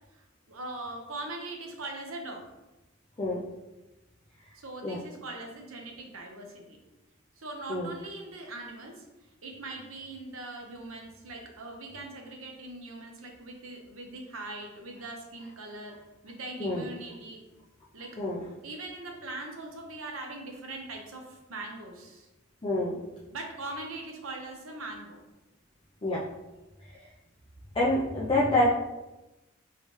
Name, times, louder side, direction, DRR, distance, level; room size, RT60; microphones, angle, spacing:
voice 1, 0.1-2.4 4.5-6.8 7.4-16.0 16.2-17.4 17.9-18.2 18.6-22.3 23.3-25.2, right 2 dB, 85° right, 2 dB, 0.9 m, -41 dB
voice 2, 22.6-23.0 26.0-26.2 27.7-28.7, left 1 dB, 25° left, -6 dB, 0.6 m, -27 dB
4.8 x 3.3 x 3.2 m, 1.0 s
head